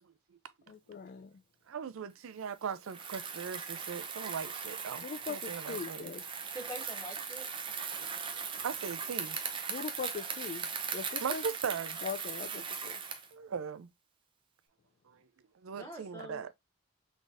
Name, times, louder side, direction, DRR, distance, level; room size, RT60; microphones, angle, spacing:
voice 1, 0.7-1.3 5.0-6.2 9.7-10.7 10.9-11.4 12.0-13.0, left 5 dB, 40° left, 0.3 m, -41 dB
voice 2, 1.7-6.1 8.3-9.4 11.2-12.0 13.3-13.9 15.6-16.5, right 6 dB, 80° right, 0.4 m, -39 dB
Bicycle, 2.8-13.3, right 6 dB, 25° right, 0.5 m, -39 dB
voice 3, 6.5-7.5 15.7-16.5, right 1 dB, 15° left, 1.9 m, -45 dB
4.0 x 3.5 x 2.4 m
head